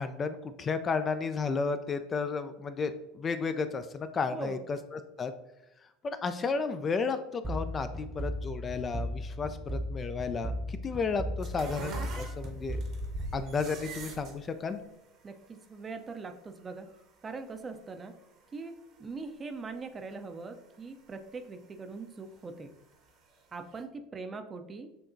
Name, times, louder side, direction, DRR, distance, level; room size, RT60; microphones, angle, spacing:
voice 1, 0.0-5.3 6.0-12.8 13.3-14.8, left 4 dB, 30° left, 10 dB, 0.3 m, -33 dB
voice 2, 4.3-4.6 15.2-16.9 17.2-18.1 18.5-22.7 23.5-24.9, right 4 dB, 25° right, 7 dB, 0.5 m, -41 dB
sound 1, 7.4-14.1, equal, ahead, 0.8 m, -37 dB
sound 2, 11.4-19.8 20.1-21.7 22.2-23.4 23.7-23.8, right 3 dB, 50° right, 0.9 m, -44 dB
7.0 x 2.8 x 2.6 m, 0.88 s
hypercardioid pair, 75°, 0 cm